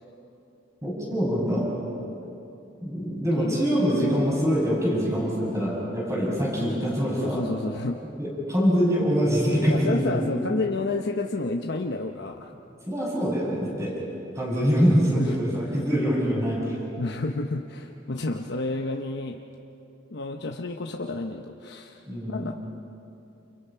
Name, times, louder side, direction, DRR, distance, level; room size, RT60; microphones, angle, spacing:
voice 1, 0.8-1.7 2.8-7.4 8.2-10.3 12.9-13.9 14.3-16.8 22.1-22.5, equal, 15° right, -4 dB, 7.3 m, -24 dB
voice 2, 7.2-8.0 9.7-12.5 15.2-15.3 16.4-16.6 17.0-19.4 20.1-22.0 22.3-22.5, left 2 dB, 65° left, 2 dB, 1.0 m, -30 dB
29.0 x 29.0 x 5.8 m, 2.9 s
head